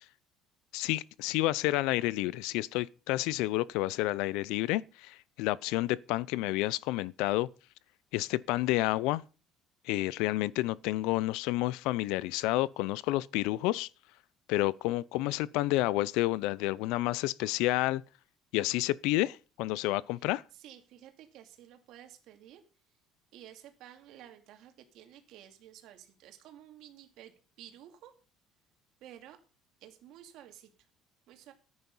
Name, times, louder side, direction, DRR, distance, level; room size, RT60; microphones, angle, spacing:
voice 1, 0.7-7.5 8.1-9.2 9.9-13.9 14.5-18.0 18.5-20.4, left 17 dB, 80° left, 0.5 m, -30 dB
voice 2, 20.1-22.6 23.3-28.2 29.0-29.4 29.8-30.7 31.3-31.5, right 11 dB, 55° right, 2.7 m, -53 dB
14.5 x 9.6 x 5.5 m
cardioid pair, 175°, 0 cm